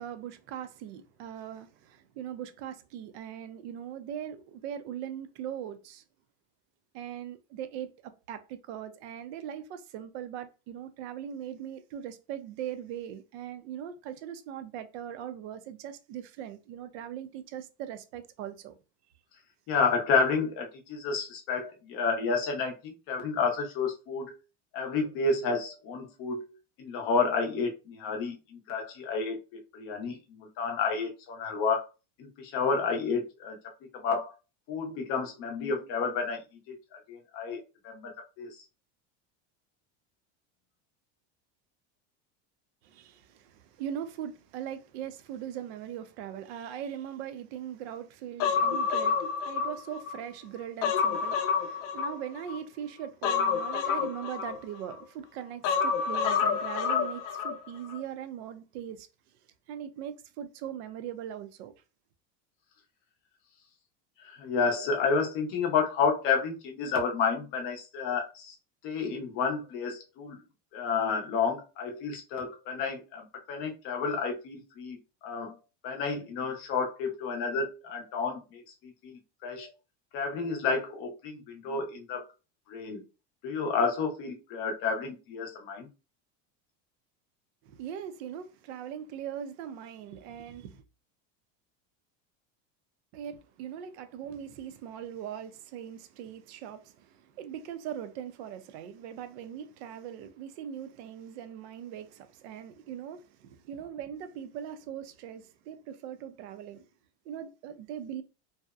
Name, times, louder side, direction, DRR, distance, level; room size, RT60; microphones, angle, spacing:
voice 1, 0.0-6.0 6.9-18.8 42.8-59.1 59.7-61.7 87.6-90.8 93.1-106.9 107.3-108.2, right 9 dB, 65° right, 0.5 m, -40 dB
voice 2, 19.7-24.3 24.7-26.4 26.8-31.9 32.2-33.6 33.9-34.3 34.7-36.4 36.7-38.6 64.2-68.5 68.8-70.4 70.7-75.5 75.8-79.1 79.4-79.7 80.1-82.3 82.7-83.0 83.4-85.9, left 5 dB, 35° left, 0.6 m, -30 dB
Human voice, 48.4-50.2 50.6-52.6 53.2-55.0 55.6-57.6 57.9-58.0, left 6 dB, 85° left, 0.6 m, -28 dB
2.7 x 2.0 x 2.3 m
cardioid pair, 170°, 36 cm